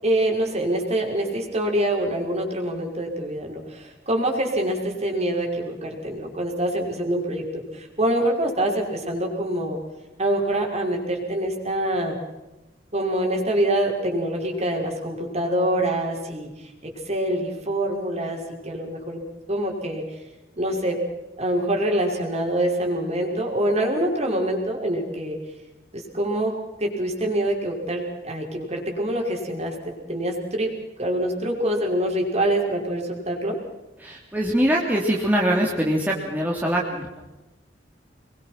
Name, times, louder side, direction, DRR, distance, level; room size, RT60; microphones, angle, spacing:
voice 1, 0.0-7.4 7.7-9.8 10.2-12.2 12.9-16.5 16.8-19.2 19.5-20.0 20.6-21.0 21.4-25.4 25.9-29.8 30.1-30.7 31.0-33.6, right 1 dB, 40° right, 1 dB, 5.8 m, -25 dB
voice 2, 34.0-37.2, equal, 10° right, -3 dB, 3.3 m, -23 dB
26.5 x 22.5 x 6.1 m, 1.0 s
head